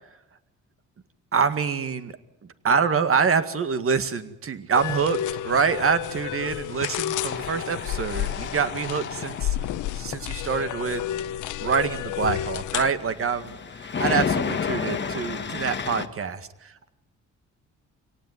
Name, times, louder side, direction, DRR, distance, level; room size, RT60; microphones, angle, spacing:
voice 1, 1.3-2.2 2.6-9.6 9.9-11.0 11.6-16.9, right 6 dB, 45° right, 10 dB, 1.9 m, -26 dB
sound 1, 4.7-12.9, left 12 dB, 85° left, 0.9 m, -31 dB
Tools, 7.1-16.1, left 6 dB, 35° left, 1.6 m, -33 dB
25.5 x 18.0 x 9.3 m, 0.93 s
cardioid pair, 90°, 30 cm